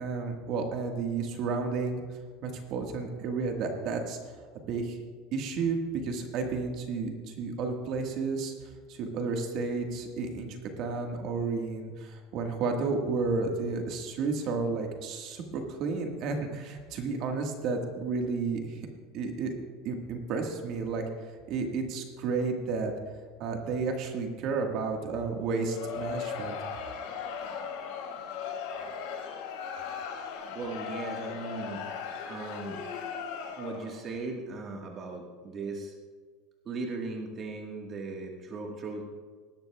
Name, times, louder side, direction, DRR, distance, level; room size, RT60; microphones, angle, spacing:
voice 1, 0.0-2.0 2.4-4.2 4.7-5.0 5.3-8.5 8.9-18.8 19.1-19.5 19.8-21.0 21.5-22.9 23.4-26.6, right 4 dB, 50° right, 3 dB, 1.5 m, -32 dB
Crowd, 25.5-34.0, left 6 dB, 75° left, 2.5 m, -37 dB
voice 2, 30.5-31.8 32.3-32.8 33.6-36.0 36.6-39.0, right 3 dB, 30° right, 1 dB, 1.4 m, -38 dB
18.5 x 12.5 x 2.3 m, 1.5 s
supercardioid pair, 140°, 0 cm